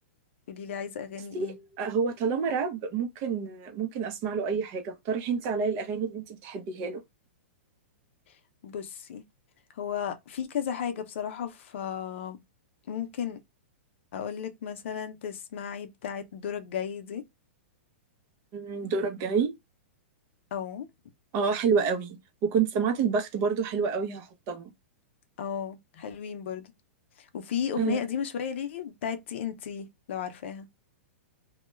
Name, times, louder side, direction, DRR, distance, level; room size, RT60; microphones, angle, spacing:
voice 1, 0.5-1.6 8.6-9.2 9.8-12.4 12.9-13.4 14.1-17.2 20.5-20.9 25.4-26.7 27.2-30.7, left 8 dB, 65° left, 0.6 m, -34 dB
voice 2, 1.3-7.0 18.5-19.5 21.3-24.7 27.8-28.0, right 5 dB, 35° right, 0.6 m, -28 dB
2.3 x 2.0 x 3.0 m
hypercardioid pair, 145°, 7 cm